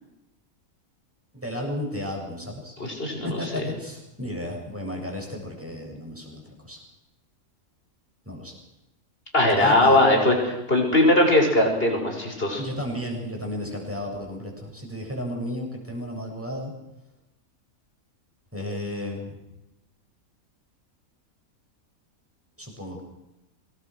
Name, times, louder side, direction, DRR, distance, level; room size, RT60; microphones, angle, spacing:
voice 1, 1.3-2.8 3.4-6.8 8.3-8.6 9.6-10.0 12.6-16.7 18.5-19.4 22.6-23.0, left 1 dB, 10° right, 0 dB, 7.6 m, -33 dB
voice 2, 2.8-3.7 9.3-12.6, left 1 dB, 40° left, 2 dB, 6.3 m, -20 dB
26.5 x 20.5 x 6.4 m, 0.94 s
omnidirectional pair, 1.5 m